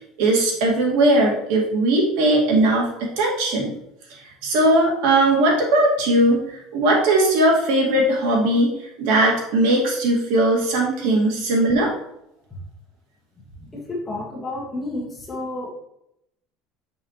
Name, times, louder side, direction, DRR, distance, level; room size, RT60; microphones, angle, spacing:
voice 1, 0.2-3.7 4.4-8.7 9.0-11.9, right 1 dB, 85° right, -1 dB, 1.9 m, -19 dB
voice 2, 13.6-15.7, left 2 dB, 10° left, -5 dB, 1.5 m, -31 dB
6.2 x 5.6 x 3.0 m, 0.81 s
cardioid pair, 165°, 0 cm